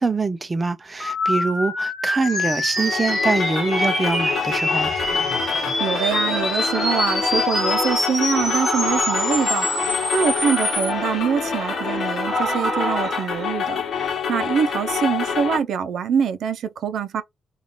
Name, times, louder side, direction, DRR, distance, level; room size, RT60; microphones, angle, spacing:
voice 1, 0.0-4.9, right 3 dB, 20° right, 0.5 m, -24 dB
sound 1, 1.0-10.9, left 2 dB, 25° left, 1.6 m, -26 dB
sound 2, 2.2-13.5, right 4 dB, 40° right, 0.9 m, -31 dB
sound 3, 2.8-15.6, left 6 dB, 60° left, 1.0 m, -27 dB
voice 2, 5.8-13.8 14.3-17.2, right 7 dB, 70° right, 0.6 m, -24 dB
3.5 x 2.4 x 3.7 m
wide cardioid pair, 160°, 0 cm